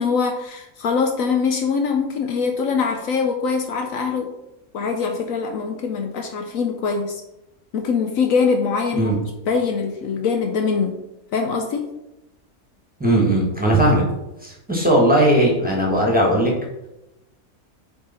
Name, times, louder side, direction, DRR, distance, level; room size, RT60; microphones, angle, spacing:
voice 1, 0.0-4.3 4.7-7.2 7.7-9.1 9.5-11.0 11.3-11.9, left 5 dB, 70° left, 4 dB, 1.0 m, -23 dB
voice 2, 13.0-14.0 14.4-16.5, right 1 dB, 5° right, -4 dB, 1.2 m, -18 dB
6.6 x 3.5 x 4.2 m, 0.92 s
omnidirectional pair, 1.6 m